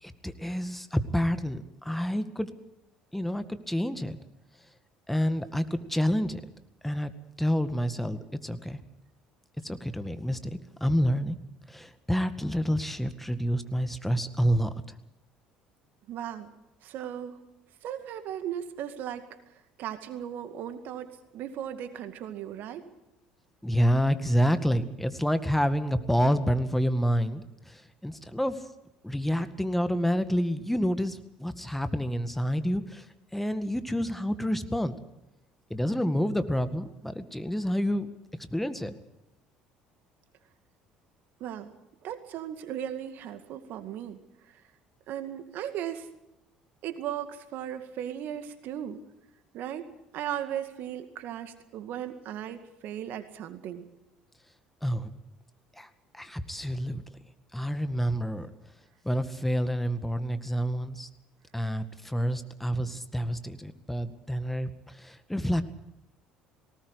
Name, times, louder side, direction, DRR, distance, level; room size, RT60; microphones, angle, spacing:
voice 1, 0.0-2.5 3.1-4.2 5.1-6.4 6.8-8.8 9.6-10.4 10.8-11.4 11.7-14.7 23.6-28.6 29.0-34.9 35.7-38.1 38.4-39.0 54.8-55.1 55.7-57.0 57.5-58.5 59.0-61.1 61.5-65.6, equal, 5° left, 10 dB, 1.9 m, -28 dB
voice 2, 16.1-16.5 16.8-17.4 17.8-19.3 19.8-22.8 41.4-41.7 42.0-44.2 44.5-44.6 45.1-46.1 46.8-49.0 49.5-49.9 50.1-53.8, right 10 dB, 60° right, 9 dB, 2.1 m, -37 dB
19.0 x 18.5 x 8.1 m, 0.90 s
hypercardioid pair, 65°, 4 cm